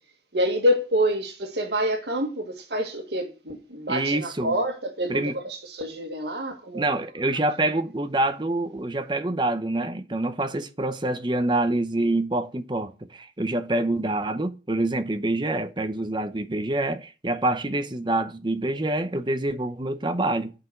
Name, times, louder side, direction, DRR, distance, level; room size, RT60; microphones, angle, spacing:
voice 1, 0.3-6.9, equal, 70° right, 1.8 m, -27 dB
voice 2, 3.9-4.6 5.1-5.4 6.7-20.5, right 2 dB, 25° right, 0.8 m, -26 dB
8.2 x 5.9 x 8.0 m
head